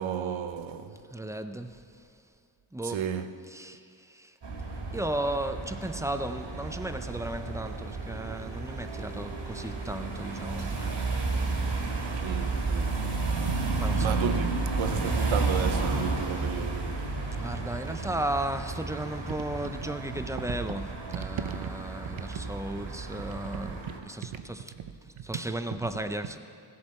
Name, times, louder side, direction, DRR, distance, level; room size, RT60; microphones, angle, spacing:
voice 1, 0.0-1.0 2.8-3.3 12.2-13.1 14.0-17.3 21.4-21.7 23.3-23.4 24.3-24.4 24.8-24.9, right 8 dB, 75° right, 0.8 m, -33 dB
voice 2, 1.1-1.8 2.7-3.1 3.4-4.4 4.9-10.8 13.8-14.2 17.3-24.7 25.1-26.4, right 1 dB, 5° right, 0.5 m, -35 dB
sound 1, 4.4-24.0, right 3 dB, 60° right, 1.9 m, -32 dB
16.5 x 7.6 x 4.3 m
wide cardioid pair, 85°, 47 cm